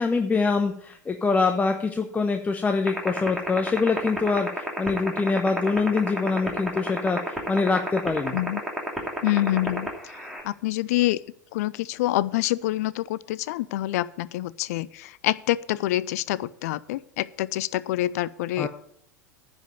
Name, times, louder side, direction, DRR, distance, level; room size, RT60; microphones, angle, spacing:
voice 1, 0.0-8.4 18.6-18.7, left 4 dB, 15° left, 6 dB, 0.8 m, -24 dB
sound 1, 2.9-10.4, right 1 dB, 5° right, 2.9 m, -27 dB
voice 2, 9.2-9.9 10.4-11.2 11.5-18.7, left 15 dB, 60° left, 19 dB, 0.5 m, -26 dB
10.0 x 5.3 x 8.4 m, 0.68 s
figure-of-eight pair, 85°, 10 cm